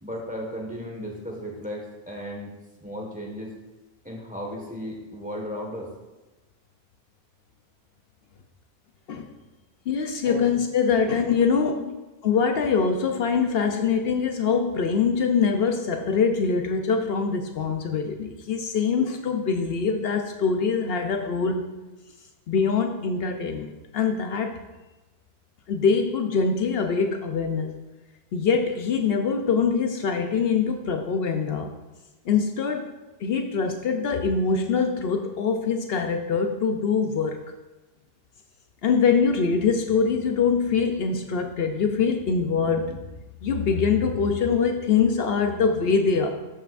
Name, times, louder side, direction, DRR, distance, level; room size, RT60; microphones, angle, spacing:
voice 1, 0.0-2.5 2.8-3.5 4.0-5.9 10.2-10.5 11.7-11.8, equal, 10° right, -1 dB, 1.4 m, -35 dB
voice 2, 9.9-11.8 12.2-21.7 22.5-24.6 25.7-27.8 28.3-31.8 32.3-32.9 33.2-37.4 38.8-43.0 43.4-46.3, left 5 dB, 70° left, 4 dB, 0.9 m, -23 dB
13.5 x 5.6 x 2.5 m, 1.1 s
omnidirectional pair, 1.1 m